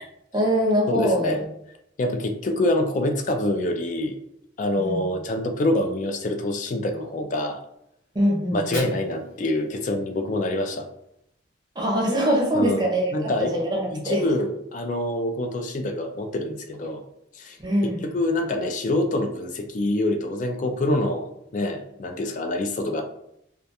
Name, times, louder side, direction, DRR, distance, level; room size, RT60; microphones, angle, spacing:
voice 1, 0.3-1.3 4.8-5.1 8.1-8.9 11.8-14.2 17.6-18.0, equal, 20° right, -2 dB, 0.6 m, -23 dB
voice 2, 0.9-1.4 2.0-4.2 4.6-7.6 8.5-10.9 12.5-13.5 13.9-17.0 17.3-17.6 18.0-23.0, left 1 dB, 40° left, 6 dB, 0.3 m, -26 dB
Fire, 8.4-10.4, left 1 dB, 80° left, 1.1 m, -41 dB
2.3 x 2.2 x 2.7 m, 0.77 s
head